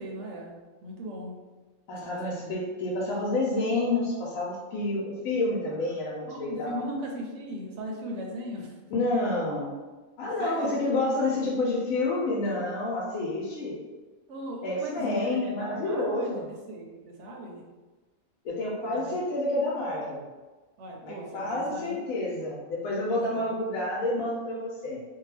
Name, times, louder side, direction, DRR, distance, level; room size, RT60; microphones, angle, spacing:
voice 1, 0.0-1.3 2.0-2.3 2.7-2.8 6.3-8.7 10.2-10.8 14.3-17.6 18.8-19.2 20.8-22.2 23.3-23.6, right 1 dB, 65° right, 0 dB, 0.9 m, -38 dB
voice 2, 1.9-6.9 8.9-9.8 10.2-13.8 14.6-16.5 18.4-20.3 21.0-25.0, left 2 dB, 85° left, -5 dB, 1.0 m, -29 dB
2.6 x 2.2 x 3.2 m, 1.3 s
omnidirectional pair, 1.4 m